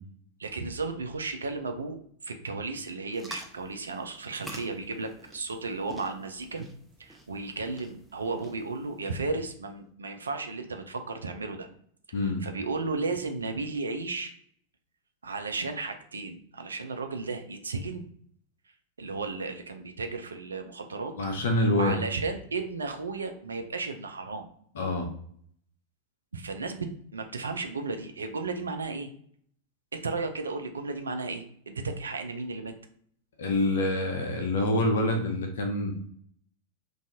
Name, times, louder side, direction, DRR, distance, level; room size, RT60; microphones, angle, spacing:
voice 1, 0.4-6.7 7.0-11.7 12.4-14.3 15.2-18.0 19.0-21.2 21.7-24.5 26.3-29.1 29.9-32.7, right 3 dB, 75° right, 6 dB, 0.3 m, -34 dB
sound 1, 3.1-9.4, right 1 dB, 5° right, 0.4 m, -48 dB
voice 2, 12.1-12.4 21.2-22.0 24.7-25.1 33.4-35.9, left 1 dB, 60° left, 4 dB, 0.6 m, -26 dB
2.5 x 2.3 x 2.7 m, 0.62 s
figure-of-eight pair, 90°, 0 cm